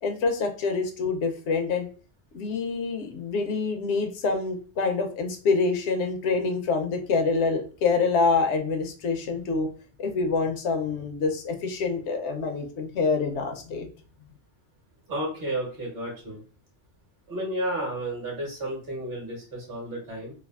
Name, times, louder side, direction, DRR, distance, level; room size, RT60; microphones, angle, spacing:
voice 1, 0.0-1.9 2.3-9.7 10.0-13.9, left 4 dB, 85° left, 5 dB, 0.9 m, -26 dB
voice 2, 15.1-16.4 17.3-20.3, right 1 dB, 60° right, -2 dB, 1.4 m, -32 dB
3.2 x 2.3 x 2.3 m, 0.38 s
omnidirectional pair, 1.2 m